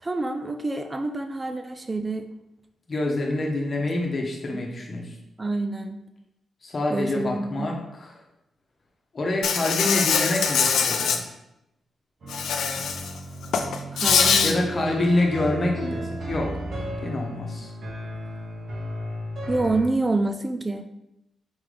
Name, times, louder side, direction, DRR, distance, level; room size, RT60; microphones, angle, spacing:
voice 1, 0.0-2.3 5.4-6.0 6.9-7.7 13.9-15.0 19.5-20.8, right 2 dB, 25° right, 7 dB, 0.3 m, -27 dB
voice 2, 2.9-5.2 6.6-8.2 9.1-11.2 14.4-16.6 17.0-17.7, left 2 dB, 45° left, 1 dB, 1.0 m, -26 dB
Insect, 9.4-11.2 12.3-13.1 13.4-14.5, left 6 dB, 85° left, 0.4 m, -22 dB
sound 1, 12.2-19.9, equal, 60° right, 1.3 m, -34 dB
4.4 x 3.8 x 3.2 m, 0.89 s
cardioid pair, 80°, 0 cm